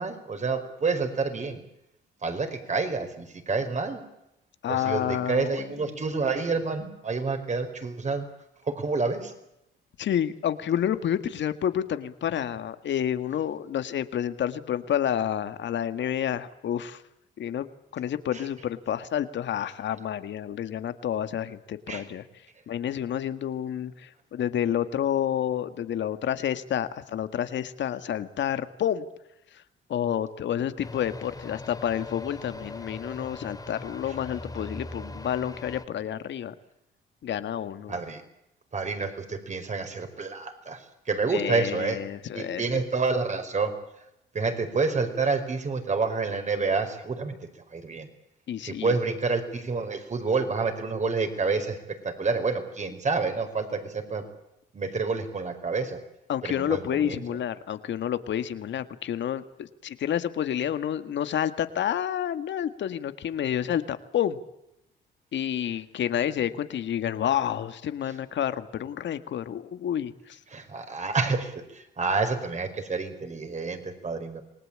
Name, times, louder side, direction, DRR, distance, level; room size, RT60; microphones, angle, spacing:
voice 1, 0.0-1.6 2.2-4.0 4.7-8.3 8.6-9.3 18.3-18.4 21.9-22.0 34.1-34.2 37.9-38.2 38.7-42.0 42.3-43.7 44.3-47.4 47.7-48.1 48.6-54.2 54.7-56.0 56.4-57.2 68.0-68.1 70.5-74.4, right 4 dB, 35° right, 7 dB, 5.0 m, -28 dB
voice 2, 4.6-5.7 10.0-17.0 17.4-22.3 22.7-29.0 29.9-36.5 37.2-37.9 41.3-42.6 48.5-49.0 56.3-64.4 65.3-70.4, left 10 dB, 65° left, 11 dB, 1.8 m, -29 dB
sound 1, 30.8-35.9, left 2 dB, 20° left, 2.9 m, -40 dB
27.5 x 19.0 x 8.8 m, 0.87 s
cardioid pair, 90°, 20 cm